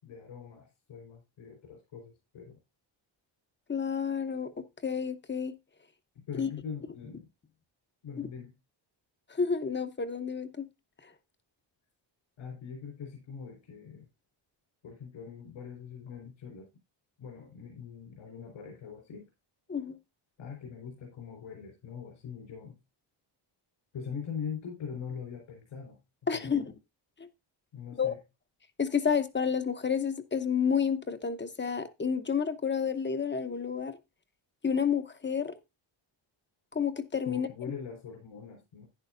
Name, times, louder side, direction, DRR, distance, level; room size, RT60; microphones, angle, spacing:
voice 1, 0.0-2.6 6.3-7.3 8.0-8.6 12.4-14.1 14.8-16.7 17.2-19.3 20.4-22.8 23.9-26.0 26.3-26.6 27.7-28.2 37.2-38.9, left 6 dB, 80° left, 4.4 m, -42 dB
voice 2, 3.7-5.5 6.4-6.5 8.2-8.3 9.3-10.7 19.7-20.0 26.3-26.7 28.0-28.1 28.8-34.0 34.6-35.5 36.7-37.5, left 6 dB, 25° left, 0.8 m, -30 dB
11.0 x 10.0 x 2.5 m
cardioid pair, 135°, 49 cm